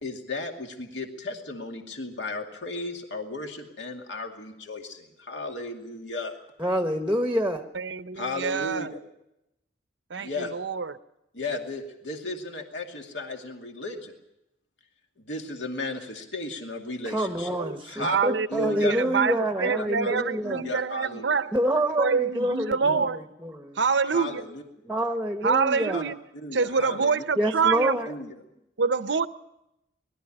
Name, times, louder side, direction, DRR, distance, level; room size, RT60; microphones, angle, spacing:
voice 1, 0.0-6.3 8.1-9.0 10.2-10.5 11.3-14.1 15.2-18.2 18.5-19.0 19.6-21.4 22.8-23.1 24.0-24.6 25.8-26.0 26.3-27.2 28.0-28.3, left 2 dB, 70° left, 2 dB, 2.4 m, -35 dB
voice 2, 6.6-7.6 17.1-20.6 21.5-23.8 24.8-26.1 27.4-28.1, right 1 dB, 5° right, 6 dB, 1.0 m, -27 dB
voice 3, 7.7-8.9 10.1-10.9 17.6-17.7 18.0-21.5 22.0-23.2 23.8-24.4 25.4-26.2 26.5-28.0 28.8-29.3, right 5 dB, 65° right, 13 dB, 0.7 m, -26 dB
20.5 x 13.0 x 9.9 m, 0.90 s
head